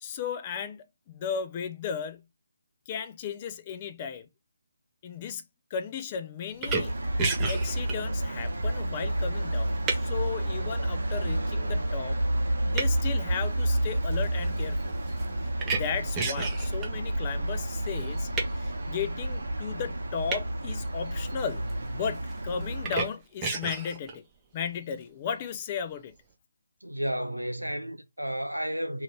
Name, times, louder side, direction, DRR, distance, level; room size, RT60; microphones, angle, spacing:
voice 1, 0.0-2.2 2.9-4.3 5.0-5.4 5.7-6.9 7.5-12.2 12.7-15.0 15.7-18.3 18.6-24.2 24.5-26.1, left 7 dB, 25° left, 0.4 m, -35 dB
sound 1, 6.5-10.2 10.8-11.2 11.9-12.1 12.4-16.9 17.8-18.6 20.3-20.5 20.8-21.9 22.1-23.0 23.4-24.1, right 4 dB, 15° right, 0.6 m, -32 dB
sound 2, 6.7-23.1, right 1 dB, 65° right, 0.9 m, -30 dB
voice 2, 26.8-29.0, equal, 90° right, 0.6 m, -32 dB
2.8 x 2.6 x 3.2 m
figure-of-eight pair, 150°, 0 cm